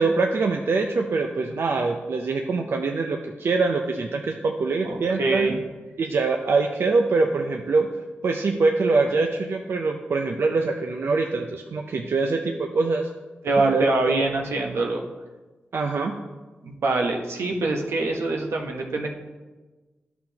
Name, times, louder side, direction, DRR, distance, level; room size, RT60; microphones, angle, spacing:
voice 1, 0.0-5.5 6.0-13.1 13.6-14.2 15.7-16.2, right 3 dB, 65° right, 3 dB, 0.5 m, -24 dB
voice 2, 4.8-5.6 13.4-15.0 16.6-19.1, right 2 dB, 85° right, 1 dB, 0.9 m, -24 dB
11.0 x 5.9 x 2.9 m, 1.2 s
cardioid pair, 55°, 4 cm